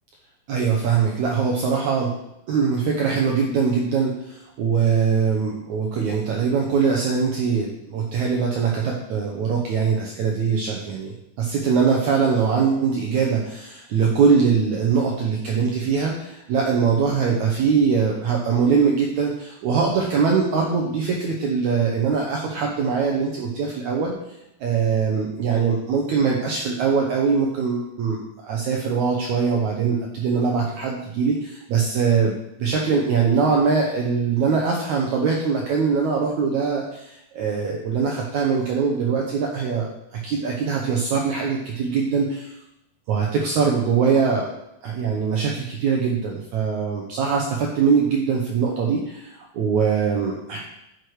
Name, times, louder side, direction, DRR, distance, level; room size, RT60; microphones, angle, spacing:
voice 1, 0.5-2.1 2.5-42.5 43.1-44.5 44.8-50.6, right 5 dB, 70° right, -1 dB, 1.9 m, -22 dB
9.7 x 6.3 x 4.8 m, 0.84 s
omnidirectional pair, 4.3 m